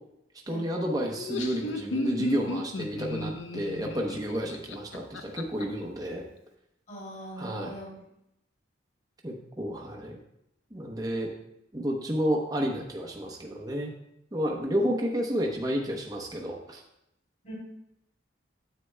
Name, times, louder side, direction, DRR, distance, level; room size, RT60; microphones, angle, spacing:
voice 1, 0.5-6.2 7.4-7.7 9.2-10.2 10.7-11.3 11.7-13.9 14.3-16.8, equal, 20° right, -1 dB, 0.8 m, -31 dB
Laughter, 1.1-5.6, left 2 dB, 80° left, 0.7 m, -34 dB
voice 2, 6.9-8.0 17.4-17.5, right 1 dB, 40° left, -5 dB, 2.9 m, -41 dB
9.6 x 8.2 x 2.2 m, 0.82 s
head